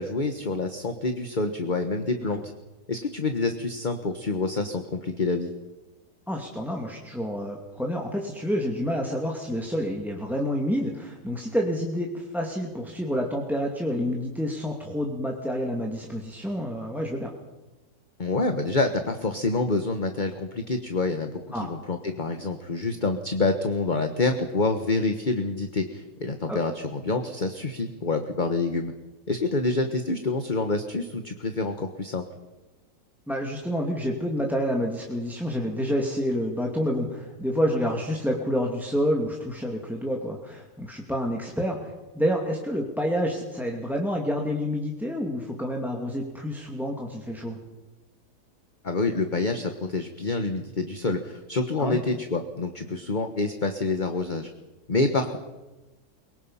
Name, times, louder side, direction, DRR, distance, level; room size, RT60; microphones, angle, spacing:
voice 1, 0.0-2.4 2.9-5.5 18.2-21.3 21.6-28.9 29.3-32.2 48.8-54.5 54.9-55.4, left 3 dB, 30° left, 7 dB, 1.4 m, -27 dB
voice 2, 6.3-17.3 21.5-21.7 26.5-26.6 33.3-47.6 51.8-52.0, equal, ahead, 0 dB, 2.5 m, -28 dB
24.0 x 23.0 x 5.7 m, 1.1 s
omnidirectional pair, 1.8 m